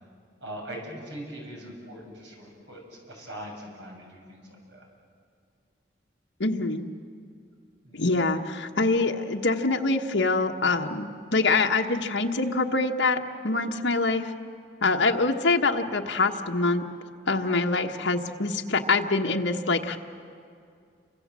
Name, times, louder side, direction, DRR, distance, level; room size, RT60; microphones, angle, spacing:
voice 1, 0.4-4.8 7.8-8.0, right 1 dB, 70° right, -1 dB, 6.8 m, -41 dB
voice 2, 6.4-6.9 7.9-14.3 14.8-16.8 17.3-20.0, left 3 dB, 75° left, 3 dB, 1.3 m, -25 dB
29.0 x 25.0 x 7.5 m, 2.4 s
head